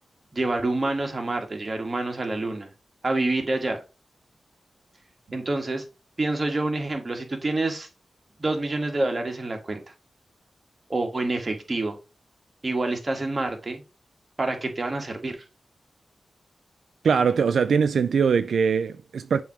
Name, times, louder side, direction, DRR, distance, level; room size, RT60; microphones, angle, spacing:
voice 1, 0.3-2.7 3.0-3.8 5.3-5.8 6.2-7.9 8.4-9.8 10.9-12.0 12.6-13.8 14.4-15.4, right 2 dB, 35° right, 1.5 m, -27 dB
voice 2, 17.0-19.4, right 6 dB, 90° right, 0.3 m, -22 dB
6.9 x 2.9 x 4.7 m
cardioid pair, 70°, 0 cm